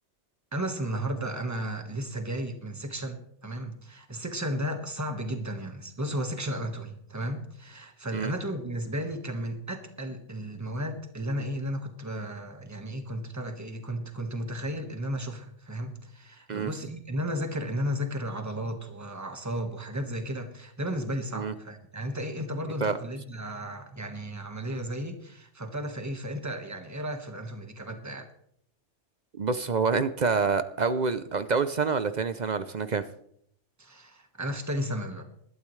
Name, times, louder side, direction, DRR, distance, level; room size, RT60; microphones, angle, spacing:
voice 1, 0.5-28.3 33.8-35.2, equal, 15° right, 5 dB, 1.4 m, -34 dB
voice 2, 29.4-33.1, right 5 dB, 45° right, 12 dB, 0.6 m, -27 dB
19.5 x 12.0 x 3.2 m, 0.70 s
omnidirectional pair, 1.2 m